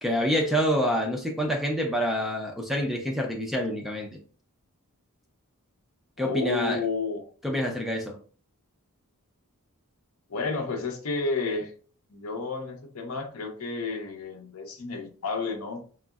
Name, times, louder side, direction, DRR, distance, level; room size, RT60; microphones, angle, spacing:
voice 1, 0.0-4.2 6.2-6.8 7.4-8.2, equal, ahead, 0.3 m, -27 dB
voice 2, 6.2-7.3 10.3-11.7 12.1-15.8, left 4 dB, 75° left, 0.6 m, -31 dB
3.5 x 2.0 x 2.2 m
head